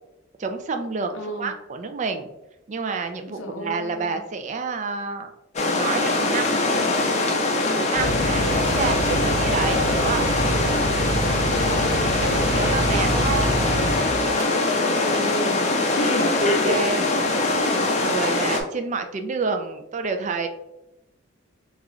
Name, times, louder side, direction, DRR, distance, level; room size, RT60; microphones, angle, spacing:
voice 1, 0.4-2.3 2.7-5.3 5.7-6.6 7.8-10.3 12.2-13.6 16.0-17.0 17.8-20.5, right 4 dB, 35° right, 6 dB, 0.3 m, -29 dB
voice 2, 1.1-1.5 3.3-4.2 8.0-8.6 11.3-12.0 14.3-17.2, left 1 dB, 75° left, 4 dB, 0.6 m, -30 dB
sound 1, 5.6-18.6, left 2 dB, 35° left, 0.4 m, -22 dB
sound 2, 7.9-14.4, right 1 dB, 60° right, 0.7 m, -27 dB
3.1 x 2.4 x 3.7 m, 0.88 s
head